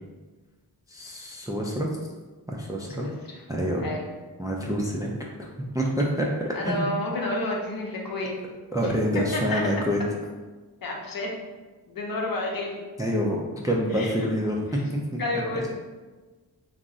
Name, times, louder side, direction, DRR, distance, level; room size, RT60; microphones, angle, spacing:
voice 1, 0.9-1.9 2.5-3.1 3.5-3.8 4.4-5.5 5.7-6.8 8.7-10.0 13.0-14.6 14.9-15.2 15.5-15.6, equal, 10° right, -1 dB, 0.3 m, -27 dB
voice 2, 3.0-3.4 3.8-4.1 6.5-8.3 8.8-9.6 10.8-11.3 11.9-12.8 13.9-14.3 14.7-14.8 15.2-15.7, left 2 dB, 55° left, -1 dB, 0.7 m, -30 dB
2.4 x 2.0 x 3.6 m, 1.3 s
cardioid pair, 55°, 42 cm